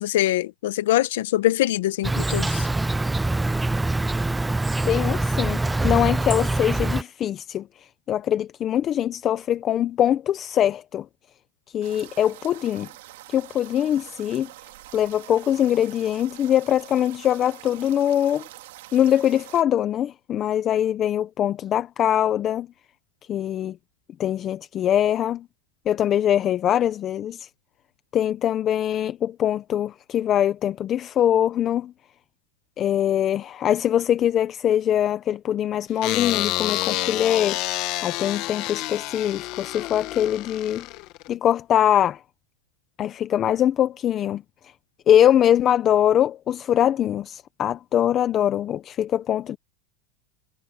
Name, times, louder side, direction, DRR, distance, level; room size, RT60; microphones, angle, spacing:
voice 1, 0.0-2.7, left 14 dB, 75° left, 1.2 m, -23 dB
Insect, 2.0-7.0, right 2 dB, 5° right, 0.3 m, -24 dB
voice 2, 4.8-11.1 11.7-12.9 13.3-14.5 14.9-18.4 18.9-22.7 23.3-23.8 24.2-25.4 25.9-27.5 28.1-31.9 32.8-37.6 38.0-40.9 41.3-42.2 43.0-44.4 45.1-49.6, left 10 dB, 25° left, 0.7 m, -22 dB
sound 1, 11.8-19.6, right 17 dB, 75° right, 2.9 m, -45 dB
sound 2, 36.0-41.3, left 19 dB, 45° left, 1.4 m, -29 dB
supercardioid pair, 155°, 0 cm